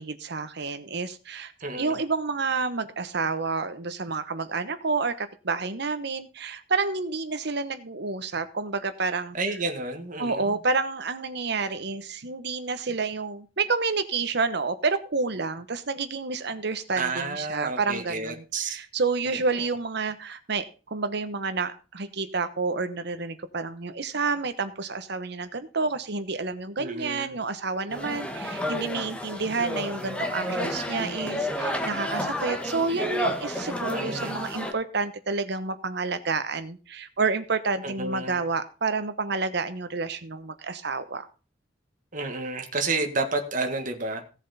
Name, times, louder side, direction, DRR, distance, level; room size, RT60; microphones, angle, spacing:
voice 1, 0.0-9.4 10.2-41.3, right 4 dB, 65° right, 11 dB, 1.1 m, -29 dB
voice 2, 1.6-1.9 9.3-10.6 16.9-18.8 19.3-19.4 26.8-27.4 33.9-34.5 37.8-38.4 42.1-44.3, right 3 dB, 45° right, 5 dB, 1.7 m, -31 dB
sound 1, 27.9-34.7, left 1 dB, 5° left, 1.5 m, -31 dB
16.5 x 7.3 x 4.2 m, 0.34 s
head